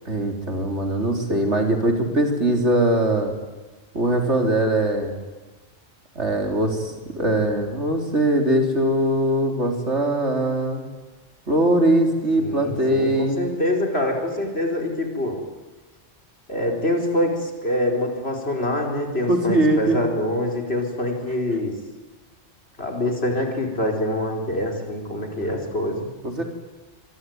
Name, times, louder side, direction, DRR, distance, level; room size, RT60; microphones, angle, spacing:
voice 1, 0.1-3.3 3.9-5.1 6.2-10.8 11.5-13.4 19.3-20.0 25.4-25.5 26.2-26.4, right 1 dB, 65° right, 3 dB, 4.1 m, -21 dB
voice 2, 12.4-15.4 16.5-21.7 22.8-26.1, left 1 dB, 55° left, 2 dB, 4.9 m, -25 dB
25.5 x 23.0 x 9.5 m, 1.3 s
omnidirectional pair, 1.3 m